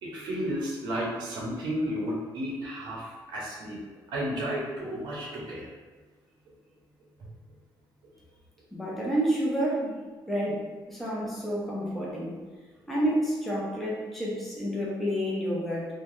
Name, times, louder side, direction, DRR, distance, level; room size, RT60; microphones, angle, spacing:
voice 1, 0.0-3.8 4.1-5.7 7.2-7.3, equal, 75° right, -4 dB, 0.7 m, -33 dB
voice 2, 8.7-10.0 10.3-12.3 12.9-15.9, equal, ahead, -6 dB, 0.6 m, -29 dB
3.1 x 2.2 x 2.6 m, 1.4 s
cardioid pair, 130°, 8 cm